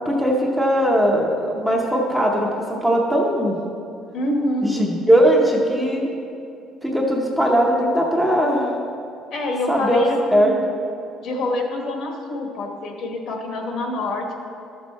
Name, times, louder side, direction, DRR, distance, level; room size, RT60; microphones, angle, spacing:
voice 1, 0.1-3.6 4.6-6.1 6.8-8.7 9.7-10.0 10.3-10.6, equal, ahead, -2 dB, 0.8 m, -19 dB
voice 2, 4.1-4.7 9.3-10.6 11.2-14.3, left 2 dB, 50° left, 2 dB, 1.2 m, -26 dB
12.5 x 6.3 x 4.1 m, 2.6 s
cardioid pair, 180°, 0 cm